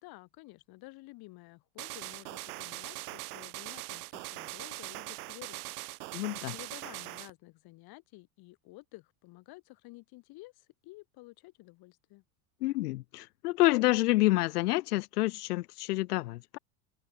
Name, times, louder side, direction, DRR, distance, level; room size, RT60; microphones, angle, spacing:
voice 1, 0.0-5.7 6.0-12.2, left 22 dB, 55° left, 5.2 m, -52 dB
sound 1, 1.8-7.3, right 21 dB, 75° right, 1.1 m, -41 dB
voice 2, 6.1-6.5 12.6-16.6, left 19 dB, 85° left, 0.9 m, -28 dB
supercardioid pair, 120°, 45 cm